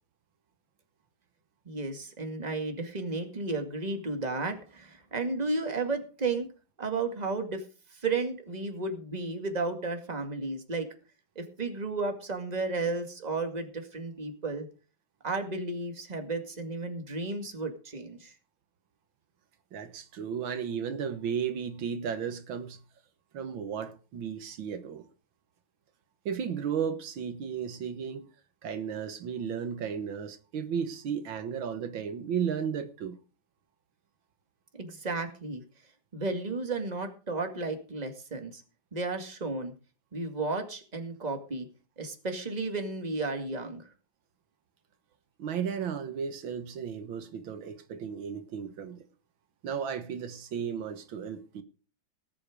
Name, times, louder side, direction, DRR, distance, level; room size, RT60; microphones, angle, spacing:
voice 1, 1.7-6.5 6.8-7.6 7.9-10.9 11.4-14.7 15.2-18.3 34.7-35.6 36.1-38.6 38.9-39.7 40.1-41.7 42.0-43.8, right 3 dB, 20° right, 2.1 m, -33 dB
voice 2, 19.7-22.8 23.3-25.0 26.3-28.3 28.6-33.2 45.4-49.0 49.6-51.6, right 7 dB, 80° right, 2.0 m, -34 dB
18.0 x 8.5 x 5.1 m
omnidirectional pair, 2.1 m